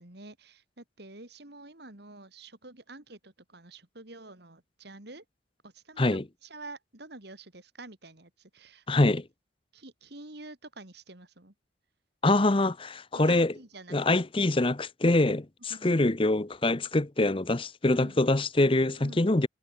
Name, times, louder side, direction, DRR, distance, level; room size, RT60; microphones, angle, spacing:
voice 1, 0.0-5.2 5.6-9.1 9.7-11.5 13.1-14.2 15.7-16.0 17.9-18.2 18.9-19.3, right 2 dB, 55° right, 2.9 m, -48 dB
voice 2, 8.9-9.2 12.2-13.5 13.9-19.5, left 2 dB, 25° left, 0.8 m, -24 dB
head